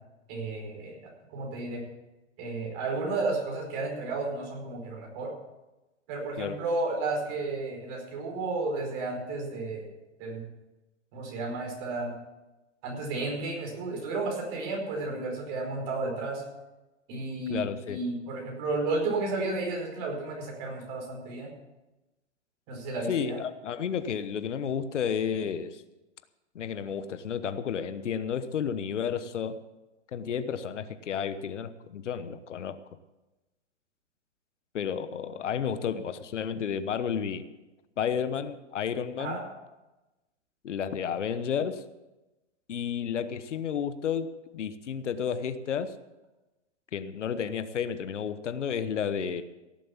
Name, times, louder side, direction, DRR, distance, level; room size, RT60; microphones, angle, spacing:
voice 1, 0.3-1.0 1.3-1.8 2.4-5.3 6.1-9.9 10.2-10.4 11.1-12.1 12.8-16.4 17.1-21.5 22.7-23.4 39.2-39.4, right 3 dB, 35° right, 1 dB, 4.8 m, -32 dB
voice 2, 17.5-18.0 23.1-25.8 26.5-29.6 30.1-32.8 34.7-37.4 38.0-39.4 40.6-41.8 42.7-44.3 44.5-45.9 46.9-49.4, left 7 dB, 85° left, 12 dB, 1.2 m, -31 dB
17.0 x 7.6 x 7.2 m, 1.1 s
hypercardioid pair, 150°, 35 cm